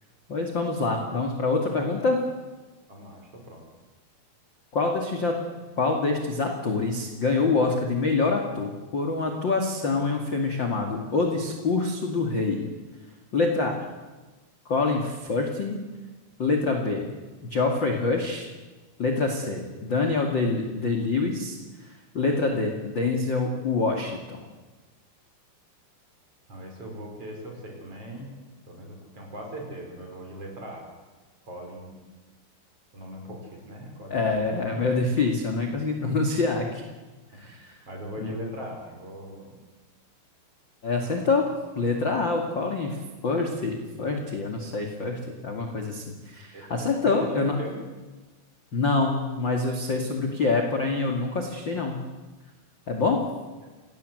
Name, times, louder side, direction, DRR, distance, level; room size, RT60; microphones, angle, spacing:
voice 1, 0.3-2.2 4.7-5.4 5.8-12.6 13.3-13.8 14.7-15.8 16.4-17.1 17.4-18.5 19.0-21.9 22.1-24.4 34.1-36.8 37.3-37.7 38.2-38.3 40.8-41.5 41.7-47.6 48.7-52.1 52.9-53.2, left 3 dB, 40° left, 2 dB, 1.7 m, -26 dB
voice 2, 2.9-3.6 26.5-28.3 28.7-30.9 31.4-32.0 32.9-34.2 34.5-34.6 37.9-39.6 42.8-43.0 46.5-47.8, right 1 dB, 30° right, 1 dB, 6.2 m, -39 dB
28.5 x 18.0 x 8.0 m, 1.2 s
omnidirectional pair, 5.6 m